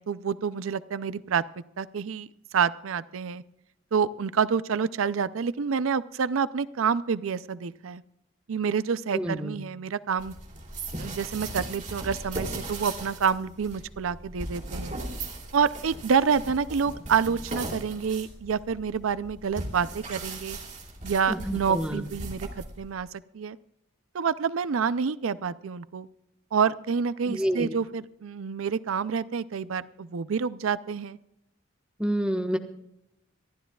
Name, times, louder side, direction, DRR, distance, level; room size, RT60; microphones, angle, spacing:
voice 1, 0.0-1.4 1.8-3.4 3.9-8.0 8.5-10.3 11.0-15.0 15.5-20.6 21.0-23.1 23.3-23.6 24.1-26.1 26.5-31.2, right 6 dB, 90° right, 16 dB, 0.5 m, -28 dB
voice 2, 9.1-9.6 21.3-22.0 27.3-27.7 32.0-32.6, equal, 5° right, 5 dB, 1.2 m, -28 dB
sound 1, 10.2-22.9, right 2 dB, 40° right, 2.9 m, -38 dB
26.5 x 12.5 x 2.3 m, 0.83 s
head